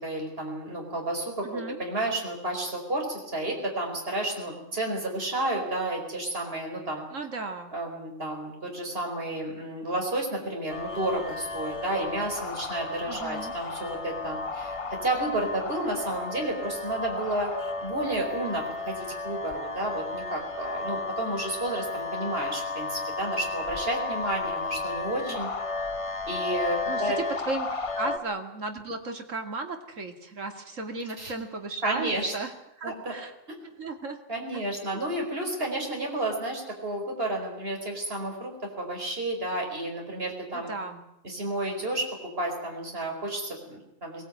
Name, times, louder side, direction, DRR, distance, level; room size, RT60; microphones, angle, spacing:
voice 1, 0.0-7.0 7.7-17.5 17.8-25.5 26.3-27.2 28.0-28.1 31.2-31.3 31.8-32.3 32.8-33.1 34.3-40.7 41.2-44.2, right 1 dB, 50° right, 1 dB, 5.2 m, -31 dB
voice 2, 1.4-1.8 7.1-7.7 13.1-13.5 25.3-25.4 26.9-27.7 28.0-32.5 32.8-33.3 33.8-34.2 34.5-34.6 34.9-35.0 40.5-41.0, right 3 dB, 75° right, 5 dB, 2.8 m, -35 dB
sound 1, 10.7-28.2, left 3 dB, 30° left, 0.9 m, -34 dB
22.0 x 19.5 x 9.3 m, 0.80 s
omnidirectional pair, 1.3 m